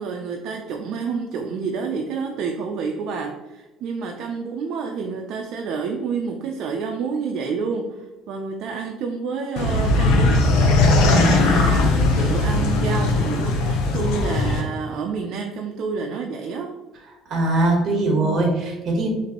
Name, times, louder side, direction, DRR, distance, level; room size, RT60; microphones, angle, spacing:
voice 1, 0.0-10.4 11.0-16.7, right 5 dB, 50° right, 2 dB, 0.4 m, -29 dB
sound 1, 9.6-14.6, left 2 dB, 80° left, 0.7 m, -19 dB
voice 2, 11.1-11.7 17.3-19.1, right 2 dB, 35° right, 0 dB, 1.2 m, -21 dB
6.9 x 2.6 x 2.9 m, 1.1 s
cardioid pair, 180°, 0 cm